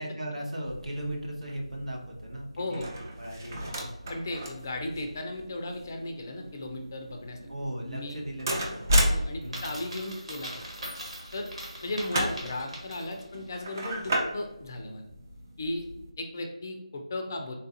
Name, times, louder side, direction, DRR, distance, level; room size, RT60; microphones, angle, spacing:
voice 1, 0.0-3.9 7.5-9.8 12.1-12.4, right 1 dB, 85° right, 0 dB, 0.9 m, -38 dB
sound 1, 0.6-16.1, equal, 30° right, 0.5 m, -34 dB
voice 2, 4.1-7.4 7.8-8.2 9.0-10.5 11.3-11.5 11.8-15.1 15.6-15.8 16.2-17.5, left 2 dB, 30° left, 4 dB, 0.4 m, -36 dB
Coin (dropping), 9.4-13.3, right 1 dB, 70° right, 1.4 m, -41 dB
3.7 x 2.4 x 2.6 m, 0.90 s
figure-of-eight pair, 165°, 4 cm